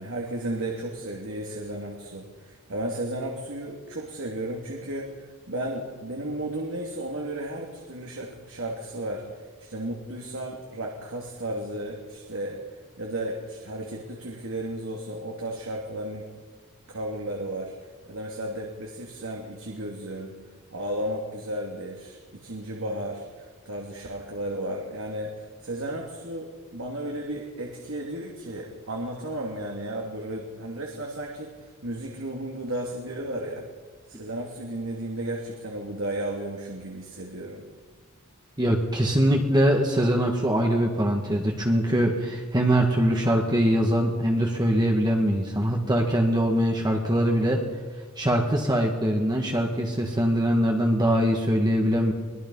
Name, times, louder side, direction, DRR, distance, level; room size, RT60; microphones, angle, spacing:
voice 1, 0.0-12.6 13.0-16.3 16.9-17.7 18.1-20.3 20.7-33.7 34.1-37.6, right 1 dB, 65° right, 0 dB, 2.7 m, -34 dB
voice 2, 38.6-47.6 48.2-52.1, equal, 20° right, 1 dB, 1.8 m, -22 dB
24.0 x 19.5 x 5.5 m, 1.5 s
head